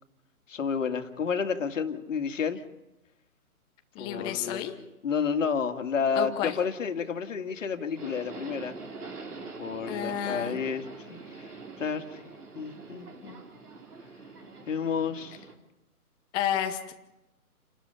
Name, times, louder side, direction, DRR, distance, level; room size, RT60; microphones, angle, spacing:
voice 1, 0.5-2.6 4.0-4.6 5.0-8.8 9.6-12.2 12.5-13.4 14.7-15.4, left 6 dB, 55° left, 7 dB, 2.2 m, -31 dB
voice 2, 3.9-4.7 6.2-6.6 9.9-10.6 16.3-16.9, left 10 dB, 10° left, 8 dB, 0.9 m, -31 dB
Subway metro underground, 8.0-15.5, right 3 dB, 80° right, 4.3 m, -44 dB
29.0 x 12.5 x 9.9 m, 0.97 s
hypercardioid pair, 145°, 45 cm